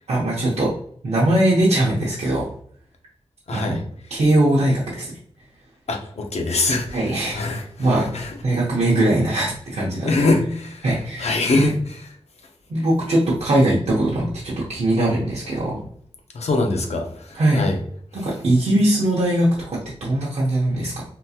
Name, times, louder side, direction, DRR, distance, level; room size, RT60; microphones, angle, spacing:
voice 1, 0.1-0.7 1.0-2.5 3.5-3.8 4.1-5.1 6.9-7.4 7.8-8.1 8.4-10.3 10.8-11.7 12.7-15.8 17.3-17.6 18.1-20.9, right 1 dB, 85° right, -6 dB, 0.7 m, -20 dB
voice 2, 3.5-3.8 5.9-8.4 10.0-10.9 11.2-12.0 16.3-17.8, left 3 dB, 80° left, 3 dB, 0.7 m, -23 dB
3.8 x 2.7 x 2.3 m, 0.62 s
wide cardioid pair, 75°, 11 cm